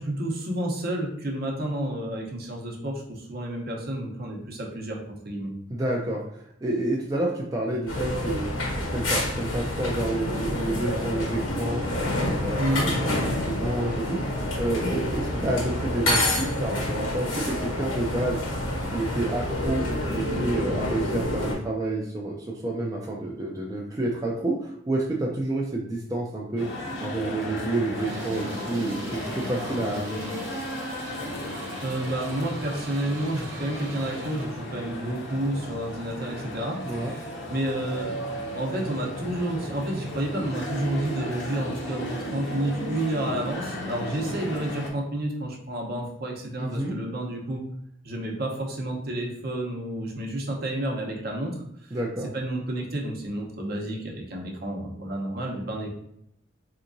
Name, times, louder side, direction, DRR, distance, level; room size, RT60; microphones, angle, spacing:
voice 1, 0.0-5.5 12.6-12.9 15.3-15.5 31.8-38.2 38.5-47.6 48.0-51.6 52.3-55.9, right 1 dB, 50° right, 0 dB, 0.7 m, -30 dB
voice 2, 5.7-6.2 6.6-8.5 8.8-11.8 12.1-12.9 13.3-18.4 18.9-19.8 20.1-26.7 27.0-30.2 36.8-37.1 46.6-47.0 51.9-52.3, right 2 dB, 20° right, -2 dB, 0.4 m, -29 dB
sound 1, 7.9-21.5, left 1 dB, 90° left, 1.3 m, -28 dB
sound 2, 26.6-44.9, equal, 65° left, 0.7 m, -35 dB
sound 3, 27.9-34.6, right 1 dB, 80° right, 0.9 m, -43 dB
3.4 x 2.9 x 2.6 m, 0.74 s
head